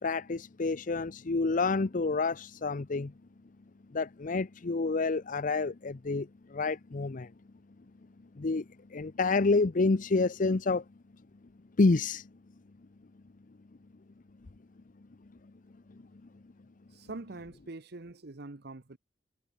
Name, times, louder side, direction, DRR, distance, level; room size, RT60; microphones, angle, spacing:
voice 1, 0.0-3.1 3.9-7.3 8.4-8.6 8.9-10.8 11.8-12.3, left 3 dB, 45° left, 0.6 m, -28 dB
voice 2, 16.9-19.0, right 2 dB, 60° right, 1.1 m, -44 dB
head